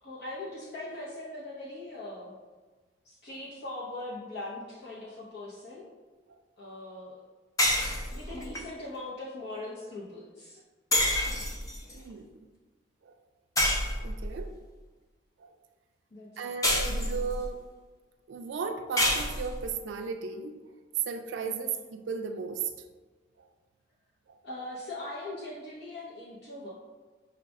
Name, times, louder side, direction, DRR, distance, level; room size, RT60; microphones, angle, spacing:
voice 1, 0.0-2.3 3.0-5.8 6.6-7.1 8.1-10.6 16.1-16.3 16.8-17.2 24.4-26.7, left 2 dB, 60° left, -7 dB, 0.8 m, -40 dB
sound 1, 7.6-8.6 10.9-11.9 13.6-14.4 16.6-17.5 19.0-19.7, left 1 dB, 20° left, 0.5 m, -28 dB
voice 2, 11.9-12.3 13.0-13.2 14.0-14.5 15.4-15.5 16.4-17.7 18.3-20.7 21.1-22.7 23.4-23.5 24.3-24.4, right 5 dB, 80° right, 6 dB, 0.4 m, -36 dB
5.0 x 2.4 x 3.5 m, 1.3 s
head